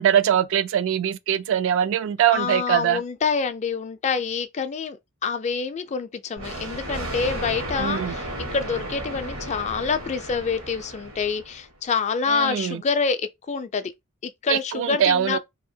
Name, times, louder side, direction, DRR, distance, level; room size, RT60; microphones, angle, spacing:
voice 1, 0.0-3.0 7.8-8.1 12.3-12.8 14.5-15.4, right 9 dB, 60° right, 0.3 m, -22 dB
voice 2, 2.3-5.0 5.2-13.9 14.2-15.4, left 5 dB, 30° left, 0.3 m, -27 dB
Thunder, 6.4-11.7, right 1 dB, 85° right, 1.3 m, -34 dB
2.8 x 2.7 x 2.6 m
head